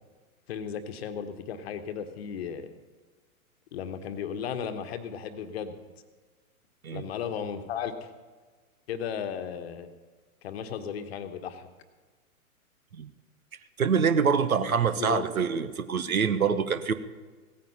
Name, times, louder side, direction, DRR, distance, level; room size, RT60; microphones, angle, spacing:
voice 1, 0.5-2.7 3.7-5.7 6.9-8.1 8.9-9.9 10.4-11.7 14.7-15.2, left 8 dB, 45° left, 8 dB, 1.3 m, -35 dB
voice 2, 13.8-16.9, right 6 dB, 75° right, 12 dB, 1.1 m, -25 dB
16.5 x 9.3 x 5.6 m, 1.4 s
figure-of-eight pair, 110°, 43 cm